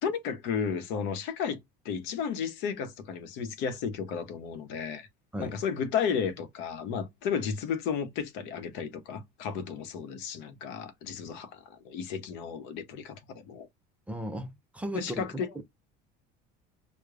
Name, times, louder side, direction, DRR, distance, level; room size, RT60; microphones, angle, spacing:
voice 1, 0.0-1.6 1.8-5.1 5.4-13.7 14.9-15.5, left 7 dB, 70° left, 0.8 m, -33 dB
voice 2, 14.1-15.3, equal, 5° right, 0.4 m, -36 dB
4.8 x 2.1 x 2.4 m
cardioid pair, 155°, 19 cm